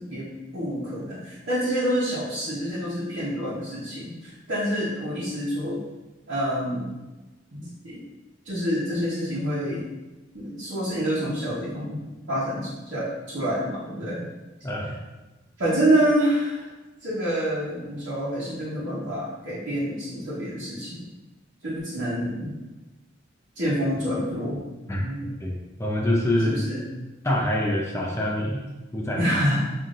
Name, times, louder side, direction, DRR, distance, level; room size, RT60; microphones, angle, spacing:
voice 1, 0.0-5.8 6.3-6.9 7.5-8.0 8.4-9.8 10.3-12.0 12.3-14.2 15.6-16.6 17.0-21.0 21.6-22.5 23.5-25.3 26.4-26.8 29.2-29.6, equal, 65° right, -12 dB, 1.1 m, -27 dB
voice 2, 25.4-26.6 27.2-28.6 28.9-29.2, left 1 dB, 15° left, -2 dB, 0.6 m, -25 dB
5.7 x 2.7 x 2.5 m, 1.1 s
head